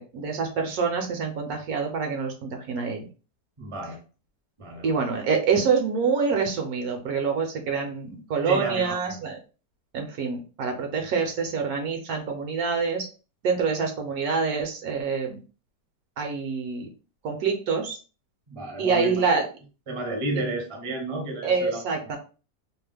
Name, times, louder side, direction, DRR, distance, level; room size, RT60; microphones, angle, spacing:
voice 1, 0.0-3.1 4.8-9.4 9.9-13.1 13.4-15.4 16.2-16.9 17.2-18.0 18.8-19.4 21.4-22.2, right 5 dB, 70° right, 3 dB, 1.1 m, -26 dB
voice 2, 3.6-4.0 4.6-5.1 8.4-9.0 18.5-19.2 19.9-21.8, right 2 dB, 30° right, 1 dB, 0.6 m, -32 dB
2.9 x 2.1 x 3.3 m, 0.34 s
omnidirectional pair, 1.8 m